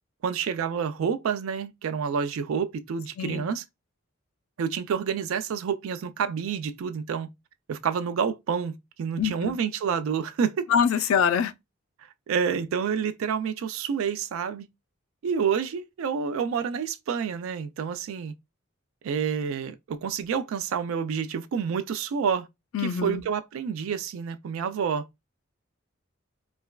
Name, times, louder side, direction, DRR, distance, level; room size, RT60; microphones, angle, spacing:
voice 1, 0.2-3.6 4.6-7.3 7.7-10.7 12.3-14.7 15.2-18.3 19.0-22.5 22.8-25.1, right 7 dB, 80° right, 0.3 m, -28 dB
voice 2, 9.2-9.5 10.7-11.5 22.7-23.2, left 7 dB, 85° left, 0.4 m, -24 dB
3.3 x 2.2 x 2.2 m
head